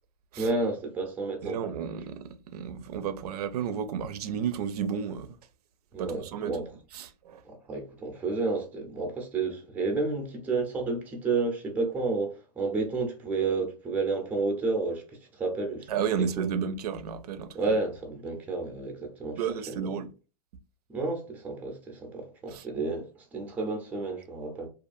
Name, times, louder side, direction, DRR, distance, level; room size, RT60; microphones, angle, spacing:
voice 1, 0.4-1.6 5.9-6.7 7.4-15.0 15.3-15.9 16.2-16.5 17.5-19.9 20.9-24.7, right 3 dB, 10° right, 0.5 m, -31 dB
voice 2, 1.4-5.4 6.0-6.6 6.9-7.4 15.9-17.7 19.4-20.1 22.5-22.7, right 7 dB, 85° right, 0.4 m, -32 dB
2.5 x 2.4 x 2.5 m
supercardioid pair, 155°, 19 cm